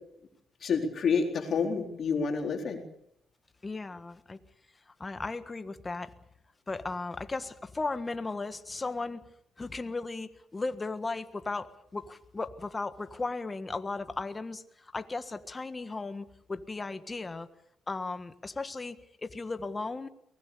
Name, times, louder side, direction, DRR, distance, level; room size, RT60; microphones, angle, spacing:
voice 1, 0.6-2.8, left 5 dB, 55° left, 3 dB, 4.2 m, -28 dB
voice 2, 3.6-4.4 5.0-6.1 6.7-9.3 9.6-17.5 17.9-20.1, left 3 dB, 25° left, 10 dB, 1.6 m, -36 dB
23.0 x 20.0 x 7.0 m, 0.77 s
cardioid pair, 90°, 0 cm